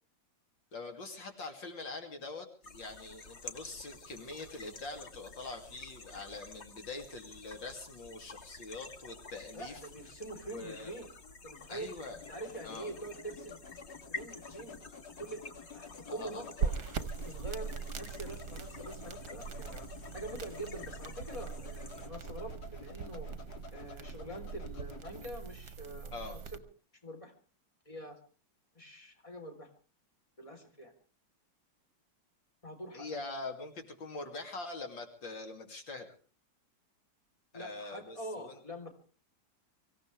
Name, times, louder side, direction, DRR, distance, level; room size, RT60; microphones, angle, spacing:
voice 1, 0.7-9.8 10.5-10.9 11.7-12.2 12.6-12.9 16.1-16.4 26.1-26.4 32.9-36.1 37.5-38.6, left 3 dB, 75° left, 4 dB, 3.3 m, -43 dB
sound 1, 2.6-22.1, left 3 dB, 40° left, 1.6 m, -51 dB
voice 2, 9.5-11.1 11.4-11.9 12.3-13.6 14.1-14.7 15.2-19.9 20.1-23.3 23.7-26.6 27.0-27.3 27.9-28.2 28.7-29.7 30.4-30.9 32.6-33.2 37.5-38.9, right 1 dB, 15° left, 4 dB, 3.8 m, -45 dB
sound 2, 9.9-25.3, left 5 dB, 55° left, 2.2 m, -51 dB
sound 3, 16.6-26.6, right 6 dB, 55° right, 1.7 m, -41 dB
24.5 x 16.5 x 3.4 m, 0.40 s
omnidirectional pair, 2.1 m